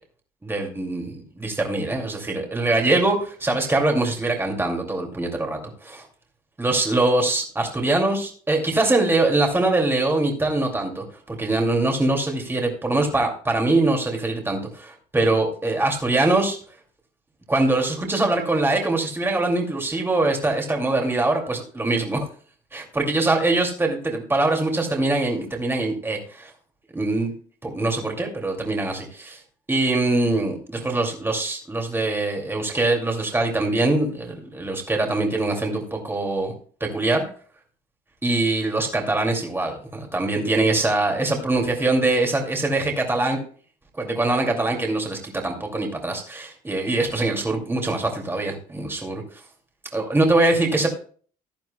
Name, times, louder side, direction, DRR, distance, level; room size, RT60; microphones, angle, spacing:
voice 1, 0.4-6.1 6.6-16.6 17.5-22.3 22.7-26.5 26.9-27.3 27.6-29.4 29.7-36.5 36.8-37.2 38.2-43.4 44.0-45.2 45.4-49.2 49.9-50.9, right 2 dB, 15° right, 1 dB, 2.3 m, -23 dB
15.5 x 10.5 x 2.2 m, 0.44 s
cardioid pair, 110°, 17 cm